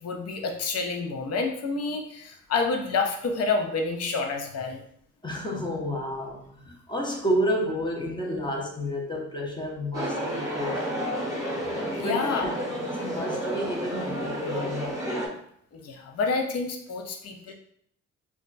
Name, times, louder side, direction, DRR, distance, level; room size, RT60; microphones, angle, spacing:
voice 1, 0.0-4.8 12.0-12.4 15.7-17.5, left 4 dB, 55° left, 3 dB, 0.6 m, -28 dB
voice 2, 5.2-11.0 12.0-12.5 12.8-15.0, equal, 15° left, -1 dB, 0.6 m, -30 dB
sound 1, 9.9-15.3, equal, 10° right, 0.9 m, -31 dB
2.3 x 2.1 x 3.8 m, 0.67 s
cardioid pair, 90°, 30 cm